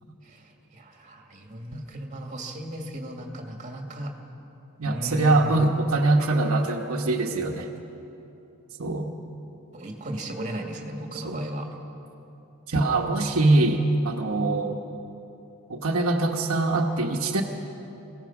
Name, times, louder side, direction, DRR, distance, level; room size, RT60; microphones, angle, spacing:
voice 1, 0.2-4.1 4.8-5.6 9.7-11.8, right 1 dB, 35° right, 2 dB, 2.2 m, -36 dB
voice 2, 4.8-7.7 8.8-9.1 11.1-11.4 12.7-14.8 15.7-17.4, right 2 dB, 75° right, 1 dB, 1.2 m, -23 dB
26.0 x 17.0 x 6.0 m, 3.0 s
head